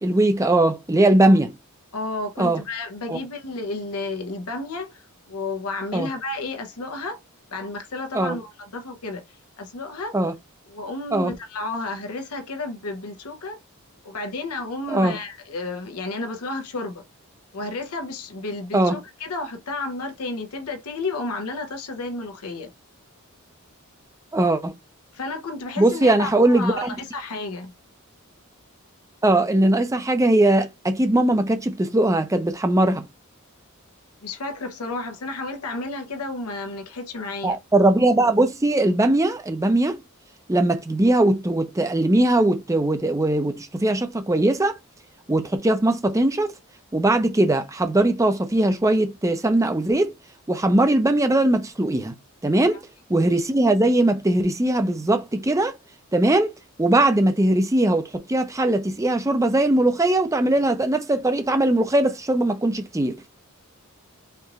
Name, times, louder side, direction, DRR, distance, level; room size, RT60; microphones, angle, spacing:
voice 1, 0.0-1.5 2.4-2.6 3.1-3.2 5.9-6.1 8.1-8.4 10.1-10.3 11.1-11.3 14.9-15.2 18.7-19.0 24.3-24.7 25.8-26.9 29.2-33.0 37.4-40.0 40.5-44.8 45.3-46.5 46.9-50.1 50.5-52.1 52.4-52.8 53.1-55.7 56.1-56.5 56.8-63.1, right 1 dB, 15° right, 0.5 m, -20 dB
voice 2, 1.9-7.2 7.5-9.2 9.6-10.1 10.7-13.6 14.0-17.0 17.5-22.7 25.1-27.7 34.2-37.6, left 3 dB, 90° left, 0.9 m, -32 dB
4.4 x 3.0 x 2.5 m
head